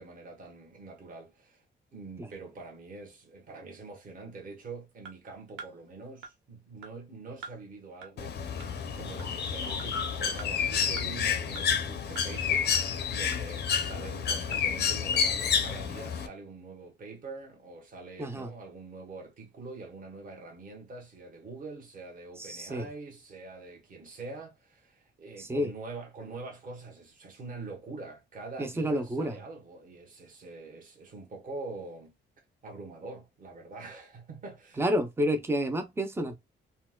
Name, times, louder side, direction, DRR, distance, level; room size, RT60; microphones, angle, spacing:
voice 1, 0.0-1.6 1.9-34.9, right 3 dB, 45° right, 1.2 m, -44 dB
sound 1, 5.0-5.1 5.6-5.7 6.2-6.3 6.8-6.9 7.4-7.6 8.0-8.1 8.6-8.7 9.2-9.3 9.8-9.9 10.4-10.5 11.0-11.1 11.6-11.7 12.2-12.3 12.7-12.8 13.3-13.4 13.9-14.0 14.5-14.6 15.1-15.2, right 5 dB, 90° right, 0.8 m, -44 dB
Bird, 8.2-16.3, left 7 dB, 60° left, 0.6 m, -29 dB
voice 2, 18.2-18.5 22.4-22.9 25.4-25.7 28.6-29.3 34.8-36.4, equal, 10° right, 0.4 m, -29 dB
4.3 x 2.1 x 2.2 m
wide cardioid pair, 175°, 19 cm